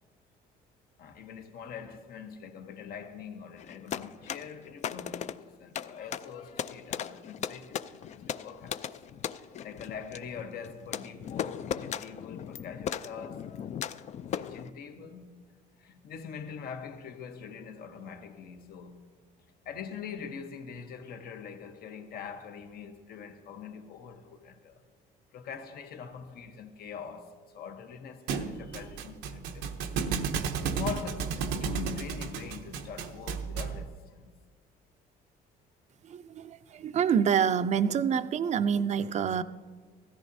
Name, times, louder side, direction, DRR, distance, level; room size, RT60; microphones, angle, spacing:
voice 1, 1.0-8.9 9.4-13.6 14.3-15.5 15.8-19.1 19.6-24.8 25.3-29.7 30.6-34.4, left 6 dB, 65° left, 1.0 m, -43 dB
sound 1, 3.6-14.7, left 9 dB, 45° left, 0.4 m, -38 dB
Thump thud, 28.3-33.8, right 5 dB, 90° right, 0.7 m, -33 dB
voice 2, 36.1-39.4, right 7 dB, 45° right, 0.5 m, -27 dB
15.5 x 14.0 x 2.7 m
cardioid pair, 110°, 17 cm